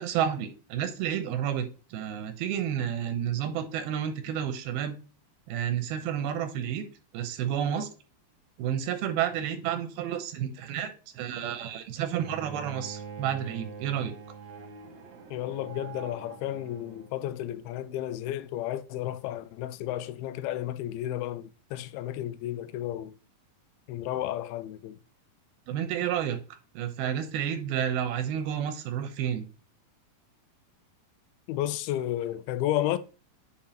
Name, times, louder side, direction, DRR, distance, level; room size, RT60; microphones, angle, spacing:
voice 1, 0.0-5.0 5.5-6.8 7.1-7.9 8.6-14.2 25.7-26.4 26.7-29.5, right 9 dB, 85° right, 2.8 m, -30 dB
Bowed string instrument, 12.2-17.2, right 6 dB, 65° right, 2.0 m, -44 dB
voice 2, 15.3-23.2 23.9-25.0 31.5-33.0, left 13 dB, 85° left, 2.5 m, -32 dB
8.7 x 4.6 x 2.9 m
omnidirectional pair, 4.3 m